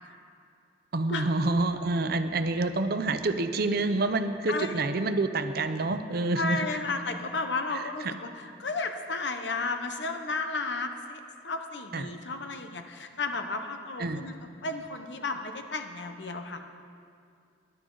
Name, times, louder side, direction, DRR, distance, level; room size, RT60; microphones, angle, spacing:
voice 1, 0.9-6.7 8.0-8.2 11.9-12.1 14.0-14.3, right 2 dB, 55° right, 9 dB, 0.7 m, -27 dB
voice 2, 6.3-14.3 14.6-16.6, left 3 dB, 70° left, 6 dB, 1.0 m, -33 dB
19.5 x 11.5 x 4.0 m, 2.3 s
head